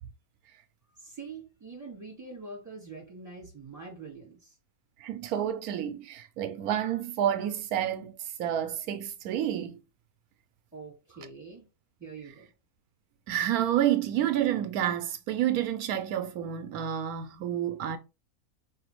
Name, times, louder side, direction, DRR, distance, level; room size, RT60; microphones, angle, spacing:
voice 1, 0.9-4.6 10.7-11.7 12.0-12.5, right 4 dB, 10° right, 2.5 m, -44 dB
voice 2, 5.0-9.8 13.3-18.0, right 11 dB, 85° right, 1.0 m, -29 dB
4.8 x 3.1 x 3.0 m
omnidirectional pair, 1.5 m